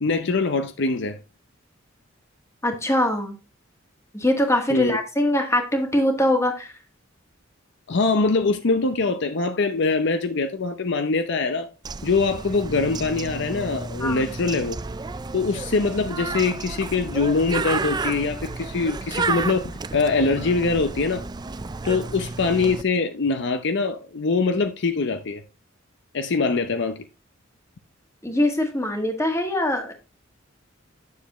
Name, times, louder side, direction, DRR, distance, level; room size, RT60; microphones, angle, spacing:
voice 1, 0.0-1.2 4.7-5.0 7.9-11.7 12.0-14.8 15.3-21.2 21.8-25.4 26.1-27.0, left 4 dB, 60° left, 0.7 m, -23 dB
voice 2, 2.6-3.4 4.1-6.7 14.0-14.3 21.9-22.0 28.2-29.9, left 1 dB, 15° left, 1.6 m, -23 dB
Bird, 11.8-22.8, right 4 dB, 20° right, 0.4 m, -31 dB
9.5 x 7.0 x 3.0 m
head